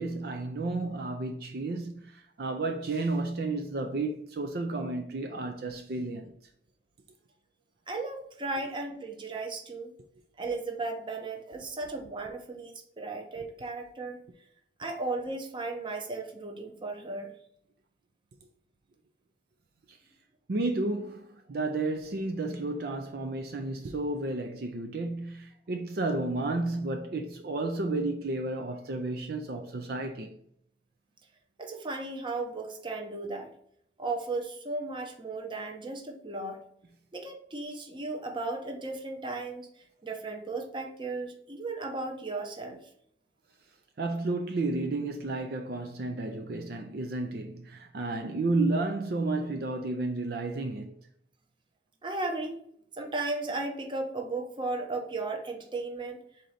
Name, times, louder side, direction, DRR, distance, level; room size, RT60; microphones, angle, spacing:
voice 1, 0.0-6.3 19.9-20.0 20.5-30.4 44.0-50.9, right 2 dB, 60° right, 0.5 m, -32 dB
voice 2, 7.9-9.9 10.4-14.2 14.8-17.3 31.6-33.5 34.0-36.6 37.1-42.9 52.0-52.6 52.9-56.2, right 3 dB, 25° right, 0.7 m, -35 dB
3.9 x 2.8 x 4.8 m
head